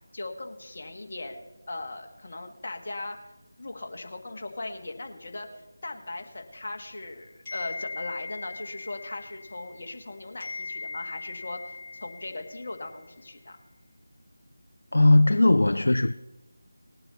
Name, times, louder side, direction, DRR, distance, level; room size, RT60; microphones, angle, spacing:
voice 1, 0.1-1.4 1.7-3.2 3.6-13.6, left 2 dB, 45° left, 1.6 m, -38 dB
sound 1, 7.4-10.1 10.4-13.0, left 3 dB, 15° left, 4.3 m, -40 dB
voice 2, 14.9-16.1, left 2 dB, 65° left, 0.4 m, -19 dB
19.5 x 8.8 x 4.1 m
figure-of-eight pair, 165°, 0 cm